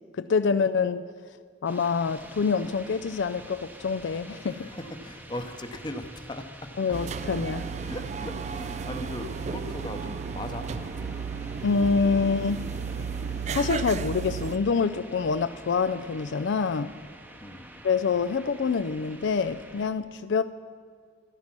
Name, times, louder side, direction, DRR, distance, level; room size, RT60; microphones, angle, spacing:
voice 1, 0.1-1.0 1.6-4.7 6.8-7.7 11.6-12.6 13.5-16.9 17.8-20.4, left 5 dB, 65° left, 11 dB, 0.4 m, -26 dB
sound 1, 1.6-19.9, right 1 dB, 10° right, 0.8 m, -47 dB
voice 2, 4.4-6.7 7.8-11.1 17.4-17.7, left 1 dB, 25° left, 6 dB, 0.8 m, -39 dB
sound 2, 6.9-14.6, right 5 dB, 35° right, 0.4 m, -33 dB
13.5 x 12.0 x 6.0 m, 2.1 s
head